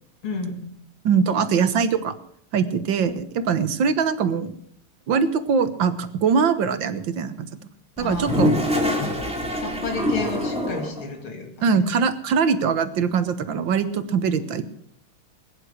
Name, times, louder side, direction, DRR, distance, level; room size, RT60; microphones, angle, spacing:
voice 1, 0.2-0.7 8.0-8.5 9.5-11.8, left 3 dB, 90° left, 4 dB, 3.6 m, -31 dB
voice 2, 1.1-2.1 2.5-4.5 5.1-7.5 8.0-8.5 11.6-14.6, right 6 dB, 65° right, 12 dB, 1.8 m, -22 dB
Toilet flush, 8.0-11.0, left 1 dB, 5° right, 2.7 m, -24 dB
20.5 x 10.0 x 6.5 m, 0.64 s
omnidirectional pair, 2.3 m